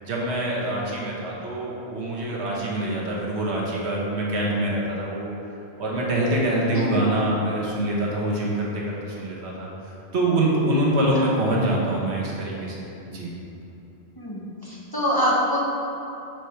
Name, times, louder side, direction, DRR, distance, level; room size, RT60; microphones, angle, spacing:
voice 1, 0.0-5.3 5.8-13.3, right 1 dB, 85° right, -4 dB, 1.4 m, -25 dB
voice 2, 14.2-15.6, equal, 25° left, -6 dB, 0.8 m, -25 dB
4.9 x 4.6 x 5.6 m, 2.9 s
omnidirectional pair, 1.1 m